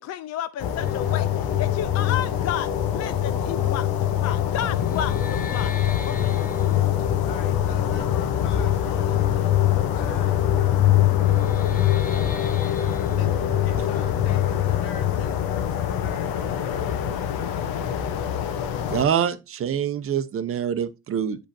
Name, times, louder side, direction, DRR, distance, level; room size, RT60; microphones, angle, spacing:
voice 1, 0.0-5.7 6.1-7.2, left 10 dB, 45° left, 0.4 m, -32 dB
sound 1, 0.6-19.1, left 8 dB, 65° left, 1.0 m, -27 dB
sound 2, 0.8-16.3, left 13 dB, 20° left, 0.9 m, -25 dB
voice 2, 7.2-18.1, left 7 dB, 85° left, 1.4 m, -45 dB
voice 3, 18.9-21.4, right 8 dB, 35° right, 0.7 m, -25 dB
8.9 x 5.0 x 2.6 m
cardioid pair, 120°, 38 cm